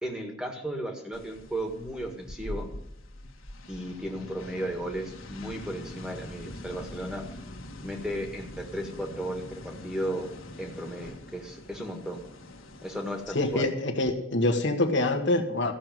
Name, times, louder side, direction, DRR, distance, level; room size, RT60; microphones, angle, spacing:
voice 1, 0.0-2.7 3.7-7.2 7.8-10.3 10.6-12.2 12.8-13.7, right 1 dB, 5° right, 2 dB, 1.7 m, -35 dB
sound 1, 1.1-13.7, left 1 dB, 80° left, 1.7 m, -43 dB
voice 2, 13.3-15.7, left 2 dB, 60° left, 2 dB, 1.5 m, -25 dB
14.5 x 6.7 x 7.6 m, 0.87 s
head